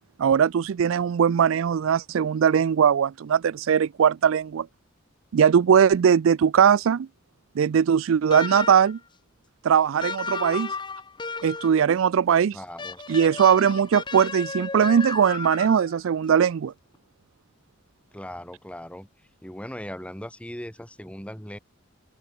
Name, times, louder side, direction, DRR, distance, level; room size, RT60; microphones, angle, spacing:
voice 1, 0.2-4.7 5.3-7.1 7.6-9.0 9.6-10.7 11.4-12.6 13.1-16.7, right 7 dB, 70° right, 0.4 m, -20 dB
sound 1, 8.3-9.0 10.0-11.8 12.8-16.0, left 4 dB, 20° left, 1.0 m, -34 dB
voice 2, 12.5-13.0 18.1-19.1 19.4-21.6, equal, 5° left, 3.2 m, -38 dB
head